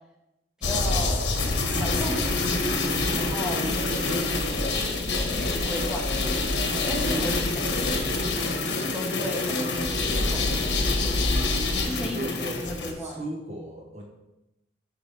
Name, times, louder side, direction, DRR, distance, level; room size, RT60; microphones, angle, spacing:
sound 1, 0.6-12.9, left 3 dB, 80° left, 1.4 m, -26 dB
voice 1, 0.6-1.3 1.7-4.3 5.3-6.4 6.8-7.8 8.2-8.6 8.9-10.7 11.7-13.3, equal, 5° right, -2 dB, 1.5 m, -35 dB
voice 2, 12.1-12.7 13.0-14.0, right 1 dB, 40° right, 0 dB, 0.9 m, -36 dB
13.5 x 4.9 x 3.4 m, 0.92 s
head